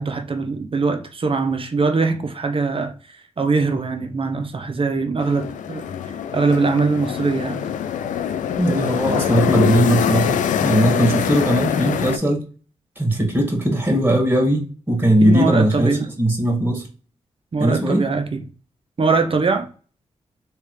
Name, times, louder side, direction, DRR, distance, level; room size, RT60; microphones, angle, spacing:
voice 1, 0.0-2.9 3.4-5.8 6.3-7.6 15.2-16.1 17.5-18.4 19.0-19.7, right 4 dB, 45° right, 0.9 m, -21 dB
sound 1, 5.2-12.2, left 8 dB, 85° left, 0.4 m, -23 dB
voice 2, 8.6-12.4 13.0-16.9 17.6-18.0, right 1 dB, 15° right, 1.9 m, -19 dB
3.4 x 3.2 x 3.1 m
cardioid pair, 55°, 13 cm